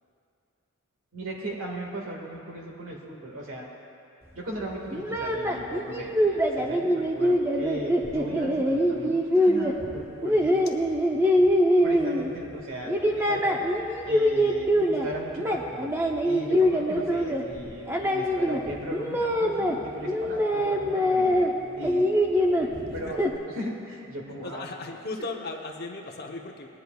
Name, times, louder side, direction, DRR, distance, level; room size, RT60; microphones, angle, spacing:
voice 1, 1.1-3.7 4.3-10.6 11.8-13.7 14.0-16.0 16.2-22.1 22.9-23.2 23.5-24.6, right 1 dB, 65° right, -1 dB, 1.8 m, -37 dB
sound 1, 4.9-12.5 12.8-15.1 15.3-19.8 20.1-21.5 21.8-23.3, equal, 10° right, 0.6 m, -24 dB
voice 2, 22.7-23.2 24.3-26.7, left 3 dB, 45° left, 1 dB, 0.9 m, -37 dB
19.5 x 10.0 x 2.3 m, 2.5 s
head